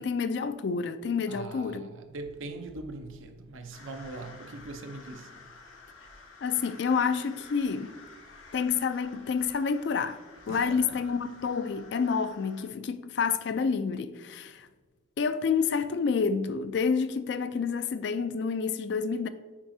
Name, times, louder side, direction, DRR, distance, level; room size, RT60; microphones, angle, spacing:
voice 1, 0.0-1.8 6.4-7.9 8.5-10.2 10.5-14.7 15.2-19.3, left 5 dB, 60° left, 0.3 m, -28 dB
voice 2, 1.3-5.5 10.5-11.1, right 2 dB, 80° right, 0.6 m, -41 dB
sound 1, 3.7-12.7, left 3 dB, 85° left, 1.2 m, -51 dB
7.3 x 4.8 x 2.7 m
head